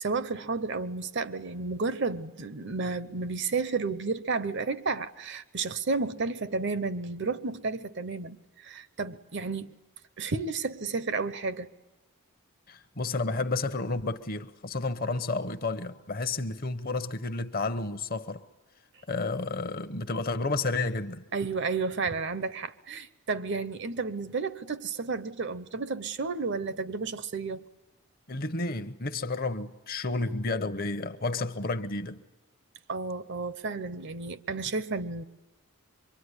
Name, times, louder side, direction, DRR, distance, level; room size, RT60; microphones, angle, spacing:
voice 1, 0.0-9.7 10.2-11.7 21.3-27.7 32.9-35.2, right 4 dB, 50° right, 0.9 m, -32 dB
voice 2, 12.7-18.4 19.1-21.2 28.3-32.2, left 3 dB, 40° left, 0.9 m, -31 dB
25.0 x 23.5 x 9.8 m
head